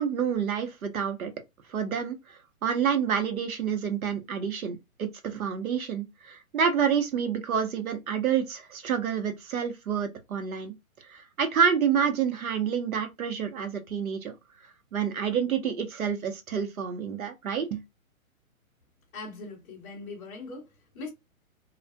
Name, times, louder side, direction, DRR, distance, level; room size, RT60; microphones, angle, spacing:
voice 1, 0.0-1.3 1.7-10.7 11.1-14.3 14.9-17.8, right 7 dB, 75° right, 0.9 m, -28 dB
voice 2, 19.1-21.1, left 3 dB, 15° left, 0.7 m, -41 dB
2.4 x 2.2 x 2.5 m
hypercardioid pair, 145°, 42 cm